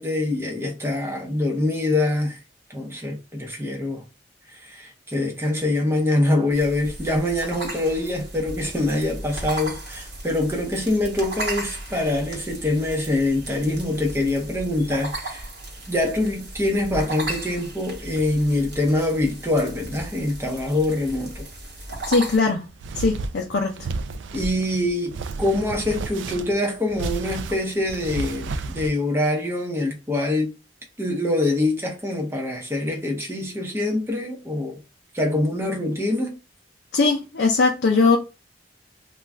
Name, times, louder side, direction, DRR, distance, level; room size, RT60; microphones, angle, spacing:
voice 1, 0.0-2.4 2.7-4.0 4.5-15.5 15.9-21.5 24.3-30.5 31.0-34.8 35.1-36.4, left 2 dB, 15° right, 0.6 m, -24 dB
sound 1, 6.5-22.4, right 1 dB, 70° right, 1.1 m, -36 dB
voice 2, 22.1-22.6 23.0-23.7 36.9-38.2, left 3 dB, 80° left, 0.5 m, -20 dB
sound 2, 22.2-28.9, right 3 dB, 85° right, 0.3 m, -32 dB
2.4 x 2.2 x 3.2 m
head